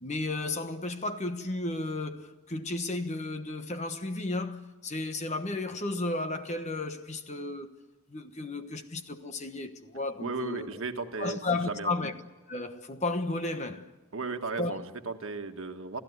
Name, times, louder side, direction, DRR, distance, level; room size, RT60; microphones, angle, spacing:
voice 1, 0.0-7.7 8.1-10.7 11.2-12.1 12.5-13.9 14.6-14.7, left 2 dB, 30° left, 1.2 m, -33 dB
voice 2, 10.2-12.0 14.1-16.0, right 3 dB, 65° right, 1.6 m, -35 dB
29.0 x 15.5 x 9.6 m
head